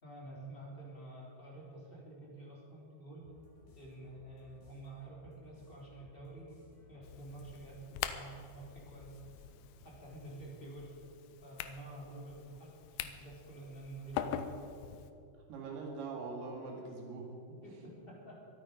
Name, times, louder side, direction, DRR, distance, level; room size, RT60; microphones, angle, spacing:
voice 1, 0.0-3.2 3.7-6.6 6.9-9.2 9.8-10.9 11.4-14.7 17.6-18.5, right 2 dB, 15° left, -4 dB, 3.1 m, -49 dB
sound 1, 3.2-10.9, left 1 dB, 55° left, 4.4 m, -60 dB
sound 2, 7.0-15.1, left 10 dB, 80° left, 2.3 m, -44 dB
voice 2, 15.5-17.6, right 4 dB, 75° right, -1 dB, 4.1 m, -43 dB
25.0 x 9.0 x 5.2 m, 2.6 s
omnidirectional pair, 4.8 m